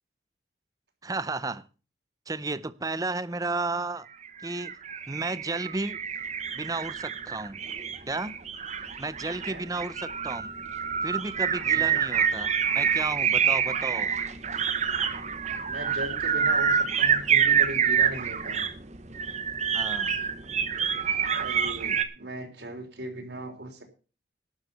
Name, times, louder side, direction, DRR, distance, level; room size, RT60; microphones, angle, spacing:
voice 1, 1.0-1.6 2.3-4.1 4.4-4.8 5.1-6.0 6.5-7.6 8.1-8.4 9.0-10.5 11.0-14.1 19.7-20.1, right 3 dB, 20° right, 0.6 m, -33 dB
sound 1, 4.3-22.0, right 7 dB, 40° right, 1.0 m, -27 dB
voice 2, 11.7-12.0 15.7-18.6 21.3-23.8, right 1 dB, 65° right, 3.6 m, -38 dB
12.0 x 7.6 x 6.9 m
head